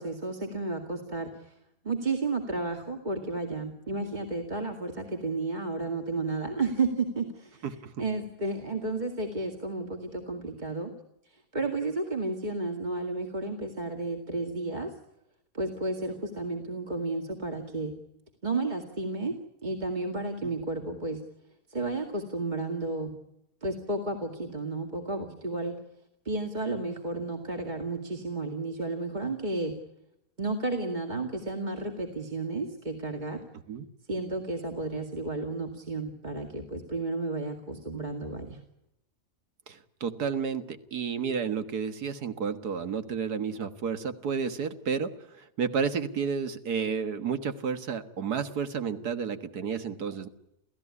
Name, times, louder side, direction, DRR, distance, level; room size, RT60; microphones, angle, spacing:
voice 1, 0.0-1.5 1.8-7.6 8.0-10.9 11.3-14.9 15.5-17.9 18.4-19.3 19.6-21.2 21.7-23.1 23.6-25.7 26.3-29.7 30.4-33.4 34.1-38.6, right 3 dB, 30° right, 3 dB, 2.3 m, -32 dB
voice 2, 7.6-7.9 20.4-20.5 33.7-33.9 39.7-50.3, right 6 dB, 75° right, 10 dB, 2.1 m, -31 dB
29.0 x 16.0 x 9.6 m, 0.85 s
omnidirectional pair, 1.7 m